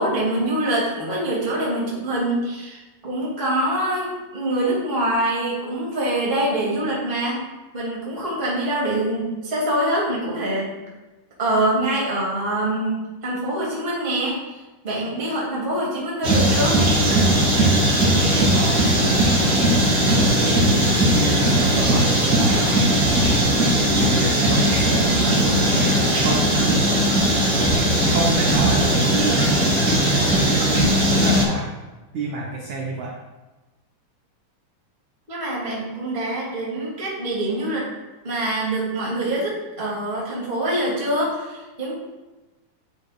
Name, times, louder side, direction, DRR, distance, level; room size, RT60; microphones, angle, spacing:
voice 1, 0.0-7.4 7.7-10.7 11.4-16.8 35.3-37.9 38.2-41.9, right 1 dB, 20° right, -6 dB, 1.5 m, -25 dB
sound 1, 16.2-31.4, right 1 dB, 35° right, 1.6 m, -18 dB
voice 2, 18.5-19.1 20.1-23.5 24.0-26.0 26.2-26.5 28.1-29.4 29.7-30.6 31.0-31.7 32.1-33.1, right 2 dB, 80° right, -3 dB, 1.7 m, -28 dB
10.5 x 5.1 x 2.3 m, 1.1 s
omnidirectional pair, 4.4 m